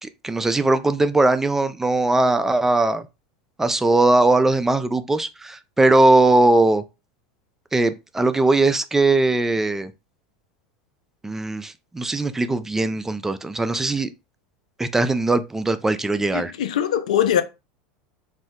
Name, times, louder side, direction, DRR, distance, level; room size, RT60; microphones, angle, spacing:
voice 1, 0.0-3.1 3.6-6.8 7.7-9.9 11.2-14.1 14.8-16.5, right 2 dB, 10° right, 0.3 m, -20 dB
voice 2, 16.3-17.4, left 10 dB, 85° left, 0.4 m, -21 dB
2.6 x 2.1 x 3.6 m
hypercardioid pair, 95°, 4 cm